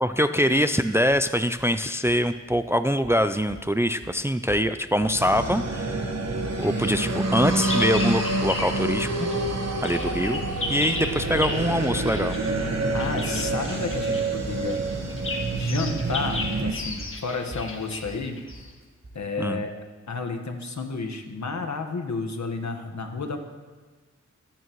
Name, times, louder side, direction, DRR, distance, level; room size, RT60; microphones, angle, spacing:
voice 1, 0.0-6.1 6.6-9.3 9.8-10.4 10.7-12.4 19.4-19.6, equal, 10° right, 10 dB, 0.4 m, -24 dB
sound 1, 1.3-1.4 1.6-2.2 2.5-3.2 3.5-3.7 4.0-4.2 4.5-5.2 5.5-6.1 6.4-19.2, right 2 dB, 45° right, 3.7 m, -43 dB
sound 2, 5.1-16.7, right 2 dB, 60° right, 1.4 m, -27 dB
Bird vocalization bird call bird song, 6.6-8.9 9.2-18.7, left 3 dB, 45° left, 1.5 m, -35 dB
voice 2, 12.9-14.8 15.5-18.4 19.1-19.7 20.1-23.4, left 4 dB, 75° left, 4 dB, 1.5 m, -31 dB
26.5 x 9.1 x 3.1 m, 1.4 s
wide cardioid pair, 85°, 29 cm